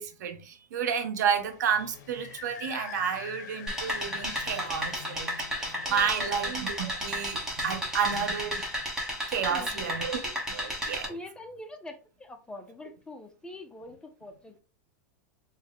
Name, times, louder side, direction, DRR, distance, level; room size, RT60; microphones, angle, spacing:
voice 1, 0.0-8.7 9.3-10.2 10.5-11.1, right 7 dB, 85° right, 0.7 m, -31 dB
sound 1, 1.4-8.7, left 9 dB, 90° left, 0.5 m, -46 dB
sound 2, 3.7-11.0, equal, 5° right, 1.1 m, -33 dB
voice 2, 5.8-6.4 9.5-9.9 10.8-14.6, left 2 dB, 10° left, 0.5 m, -44 dB
3.2 x 2.1 x 3.9 m
supercardioid pair, 135°, 9 cm